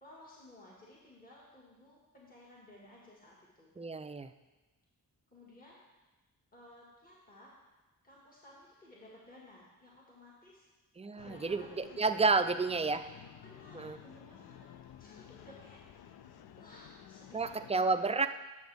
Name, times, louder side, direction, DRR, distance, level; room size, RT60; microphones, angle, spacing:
voice 1, 0.0-3.7 5.3-5.8 6.5-7.6 8.0-10.7 11.1-12.0 12.3-14.7 15.0-15.8 16.6-18.3, left 1 dB, 25° left, -5 dB, 1.8 m, -57 dB
voice 2, 3.8-4.3 11.0-13.0 13.7-14.0 17.3-18.3, right 4 dB, 20° right, 9 dB, 0.4 m, -30 dB
sound 1, 11.2-17.7, left 9 dB, 85° left, 0.5 m, -53 dB
10.0 x 6.9 x 3.4 m, 1.1 s
cardioid pair, 90°, 36 cm